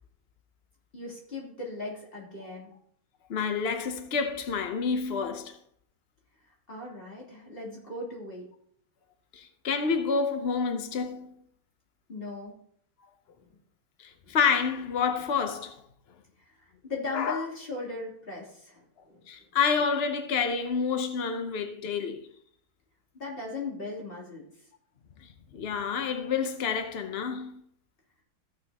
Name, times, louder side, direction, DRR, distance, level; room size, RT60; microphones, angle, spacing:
voice 1, 0.9-2.7 6.7-8.5 12.1-12.5 13.4-13.5 14.2-14.4 16.4-19.3 23.1-24.4, left 3 dB, 25° left, 3.2 m, -38 dB
voice 2, 3.3-5.5 9.3-11.3 14.0-15.8 17.1-17.4 19.3-22.2 25.5-27.5, left 5 dB, 80° left, 0.5 m, -28 dB
14.5 x 7.6 x 2.9 m
omnidirectional pair, 2.2 m